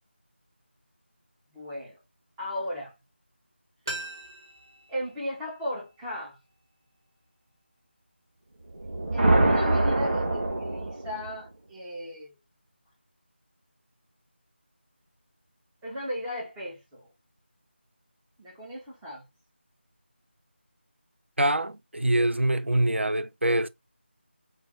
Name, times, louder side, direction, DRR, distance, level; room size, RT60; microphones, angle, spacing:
voice 1, 1.5-2.0 2.4-2.9 4.9-6.4 9.1-12.3 15.8-17.1 18.4-19.2, left 1 dB, 5° right, 0.3 m, -36 dB
sound 1, 3.9-6.7 6.9-7.0, right 2 dB, 20° right, 0.7 m, -42 dB
sound 2, 8.7-11.3, right 2 dB, 50° right, 1.5 m, -24 dB
voice 2, 21.4-23.7, right 1 dB, 90° right, 0.5 m, -24 dB
4.8 x 2.1 x 3.7 m
figure-of-eight pair, 165°, 6 cm